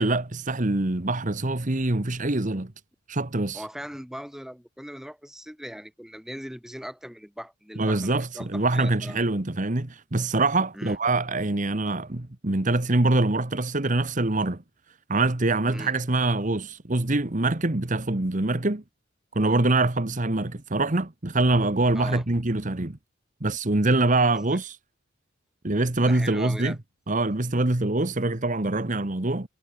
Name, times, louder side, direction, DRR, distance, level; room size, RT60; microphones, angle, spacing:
voice 1, 0.0-2.7 3.1-3.6 7.8-14.6 15.1-18.8 19.3-23.0 23.4-24.8 25.6-26.7 27.1-29.5, right 2 dB, 35° right, 1.3 m, -24 dB
voice 2, 3.5-9.2 10.7-11.0 15.7-15.9 21.9-22.2 24.5-24.6 26.0-26.8, equal, ahead, 2.1 m, -39 dB
head